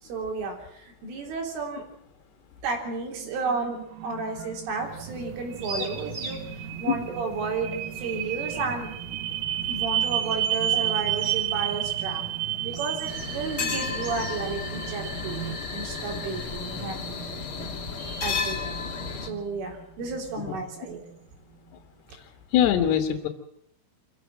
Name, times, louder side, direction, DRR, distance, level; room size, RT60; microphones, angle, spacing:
voice 1, 0.0-1.8 2.6-8.9 9.7-12.2 12.6-15.4 15.7-17.3 18.0-18.9 19.2-21.0, right 4 dB, 75° right, 1 dB, 6.1 m, -32 dB
sound 1, 3.1-21.2, right 13 dB, 90° right, 3.7 m, -33 dB
sound 2, 4.7-15.5, right 3 dB, 30° right, 2.1 m, -40 dB
sound 3, 13.1-19.3, left 5 dB, 50° left, 1.6 m, -33 dB
voice 2, 22.5-23.3, left 10 dB, 65° left, 5 dB, 3.1 m, -22 dB
25.0 x 14.5 x 7.5 m, 0.76 s
omnidirectional pair, 5.7 m